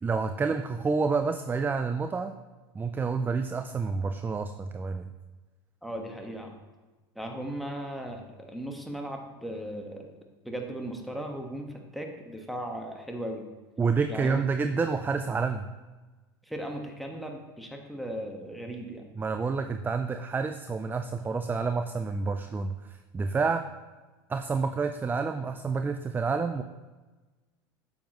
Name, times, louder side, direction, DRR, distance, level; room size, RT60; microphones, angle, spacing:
voice 1, 0.0-2.3 2.7-5.1 13.8-15.7 19.2-23.7 24.3-26.6, right 4 dB, 15° right, 8 dB, 0.4 m, -29 dB
voice 2, 5.8-6.5 7.1-10.1 10.4-13.5 14.1-14.4 16.4-19.0, right 1 dB, ahead, 1 dB, 1.4 m, -37 dB
9.0 x 7.2 x 3.0 m, 1.2 s
hypercardioid pair, 95°, 13 cm